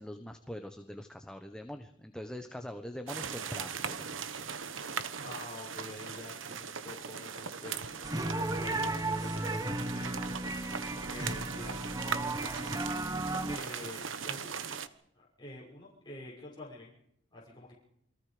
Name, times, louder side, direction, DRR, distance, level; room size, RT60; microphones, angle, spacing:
voice 1, 0.0-4.3, left 1 dB, 5° left, 6 dB, 1.2 m, -43 dB
sound 1, 3.1-14.9, right 6 dB, 75° right, 1.3 m, -39 dB
voice 2, 5.2-8.0 8.6-10.3 10.9-12.7 13.5-14.7 15.1-16.9 17.3-17.7, left 2 dB, 20° left, -5 dB, 6.2 m, -47 dB
sound 2, 8.0-13.6, right 2 dB, 20° right, 1.0 m, -34 dB
29.0 x 22.5 x 5.1 m, 0.75 s
head